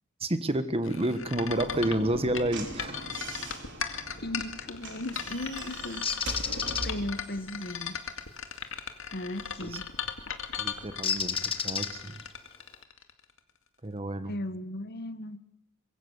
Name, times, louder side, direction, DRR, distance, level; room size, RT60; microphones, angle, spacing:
voice 1, 0.2-3.0 9.6-9.8 10.6-11.4 11.6-12.2 13.8-14.3, right 1 dB, 30° right, 11 dB, 1.5 m, -30 dB
sound 1, 0.8-13.4, left 7 dB, 70° left, 2.2 m, -37 dB
Slam / Knock, 1.3-7.2, right 2 dB, 60° right, 4.5 m, -41 dB
voice 2, 4.2-6.1 6.8-8.0 9.1-9.9 14.3-15.4, left 1 dB, 50° left, 13 dB, 1.3 m, -36 dB
Bird, 6.0-6.9 9.5-9.7 11.0-12.2, left 6 dB, 25° left, 1.4 m, -30 dB
24.5 x 22.5 x 7.2 m, 0.80 s
head